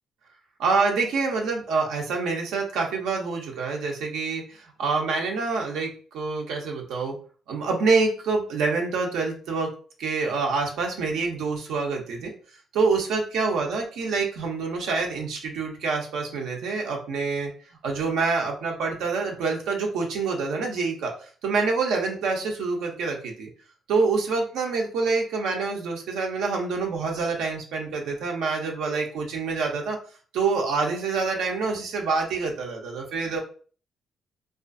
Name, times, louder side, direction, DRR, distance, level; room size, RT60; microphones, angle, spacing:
voice 1, 0.6-7.2 7.5-9.7 10.0-12.3 12.7-17.5 17.8-23.5 23.9-30.0 30.3-33.4, right 4 dB, 85° right, 1 dB, 0.5 m, -26 dB
2.4 x 2.3 x 2.4 m, 0.41 s
cardioid pair, 90°, 0 cm